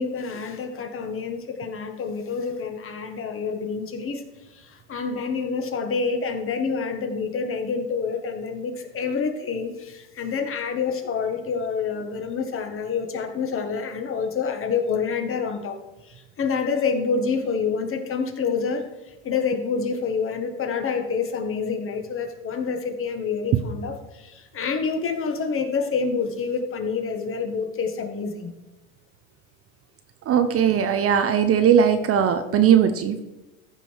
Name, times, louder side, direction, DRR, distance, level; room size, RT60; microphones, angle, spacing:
voice 1, 0.0-4.2 4.5-15.8 16.1-18.9 19.2-28.5, left 5 dB, 30° left, 6 dB, 1.4 m, -27 dB
voice 2, 30.3-33.2, right 8 dB, 30° right, 9 dB, 0.7 m, -19 dB
14.5 x 5.4 x 4.6 m, 1.0 s
supercardioid pair, 120°, 44 cm